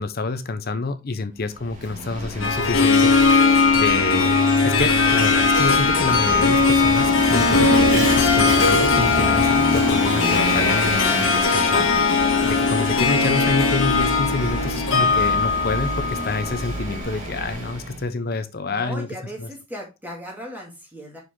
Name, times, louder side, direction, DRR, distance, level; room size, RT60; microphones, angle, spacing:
voice 1, 0.0-19.1 19.4-19.5, left 3 dB, 50° left, 0.7 m, -27 dB
Vehicle / Engine, 1.4-18.1, right 1 dB, 40° right, 2.1 m, -29 dB
Harp, 2.4-16.9, left 4 dB, 75° left, 1.5 m, -19 dB
voice 2, 18.7-21.2, equal, 10° right, 2.2 m, -37 dB
6.4 x 5.0 x 3.7 m
head